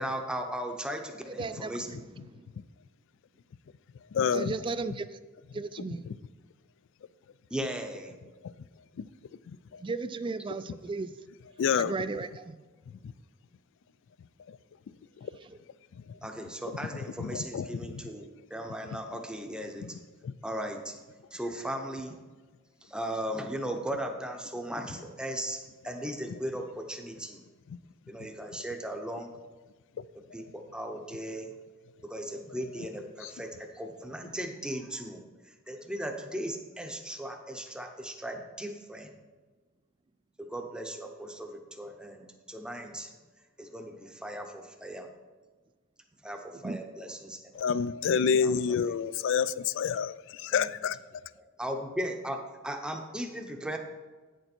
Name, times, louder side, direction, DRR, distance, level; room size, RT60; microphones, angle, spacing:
voice 1, 0.0-2.0 7.5-8.2 16.2-20.0 20.4-21.0 21.3-22.2 22.8-27.4 28.1-29.3 30.1-31.5 32.0-39.2 40.4-43.1 43.4-45.1 46.2-47.4 48.0-49.0 50.5-50.9 51.4-53.8, right 1 dB, 5° right, 0.7 m, -37 dB
voice 2, 1.4-1.7 2.3-2.5 4.3-5.2 5.5-6.0 9.8-11.2 11.8-12.6 15.4-15.6 46.6-46.8, right 3 dB, 25° right, 0.3 m, -35 dB
voice 3, 4.1-4.5 9.0-9.1 11.6-11.9 17.2-17.7 47.6-50.1 50.4-51.0, left 6 dB, 60° left, 0.3 m, -27 dB
8.9 x 6.7 x 4.4 m
head